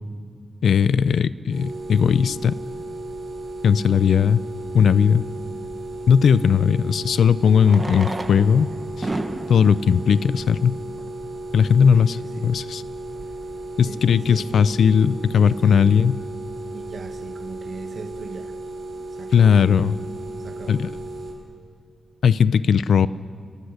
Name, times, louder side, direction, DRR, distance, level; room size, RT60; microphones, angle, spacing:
voice 1, 0.6-2.5 3.6-4.4 4.7-5.2 6.1-8.7 9.0-9.1 9.5-10.8 11.5-12.8 13.8-16.2 19.3-20.0 20.7-20.9 22.2-23.1, left 7 dB, 85° left, 17 dB, 0.5 m, -17 dB
sound 1, 1.5-21.3, right 2 dB, 85° right, 5.9 m, -35 dB
Fireworks, 4.0-4.1 6.4-6.5 7.5-11.3 12.1-12.2 12.3-12.4 12.6-12.8 13.3-13.5, right 2 dB, 20° right, 1.1 m, -34 dB
voice 2, 11.9-12.5 13.8-14.7 15.6-15.8 16.7-18.5 19.1-19.6 20.4-20.8, right 4 dB, 50° right, 7 dB, 1.4 m, -39 dB
28.5 x 19.5 x 6.6 m, 2.3 s
wide cardioid pair, 165°, 0 cm